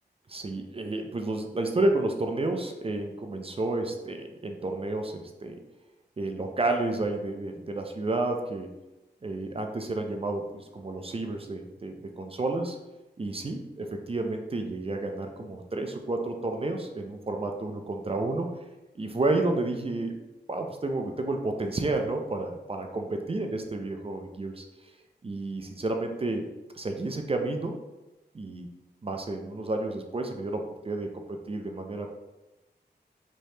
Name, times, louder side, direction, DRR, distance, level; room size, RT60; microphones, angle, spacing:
voice 1, 0.3-5.5 6.2-8.7 9.2-12.8 13.2-18.5 19.0-20.2 20.5-24.6 25.2-26.5 26.7-27.8 28.3-28.7 29.0-32.1, right 2 dB, 35° right, 4 dB, 0.4 m, -31 dB
3.3 x 3.0 x 2.7 m, 1.0 s
wide cardioid pair, 70°, 18 cm